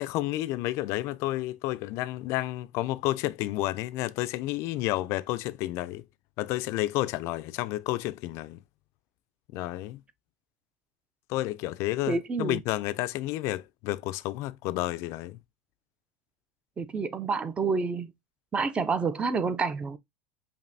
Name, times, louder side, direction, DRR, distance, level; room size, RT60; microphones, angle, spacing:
voice 1, 0.0-6.0 6.4-8.6 9.5-10.0 11.3-15.4, left 16 dB, 50° left, 0.3 m, -31 dB
voice 2, 12.1-12.6 16.8-18.1 18.5-20.0, right 4 dB, 20° right, 0.4 m, -28 dB
5.1 x 2.6 x 2.6 m
supercardioid pair, 135°, 6 cm